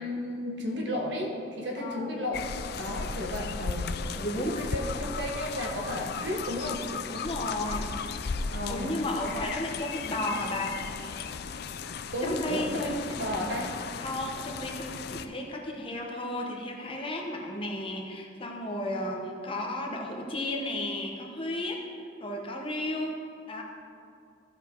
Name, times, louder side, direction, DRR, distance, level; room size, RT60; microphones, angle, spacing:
voice 1, 0.0-2.5 2.8-4.0 4.4-6.9 8.5-8.9 12.1-13.7, left 1 dB, 80° right, 1 dB, 1.5 m, -33 dB
voice 2, 1.8-2.1 4.1-4.6 7.1-8.4 8.7-10.7 12.2-12.9 14.0-21.9 22.2-23.2 23.5-23.6, left 1 dB, 30° left, 1 dB, 1.1 m, -33 dB
sound 1, 2.3-15.3, left 5 dB, 60° left, 0.4 m, -36 dB
14.5 x 5.2 x 4.6 m, 2.5 s
head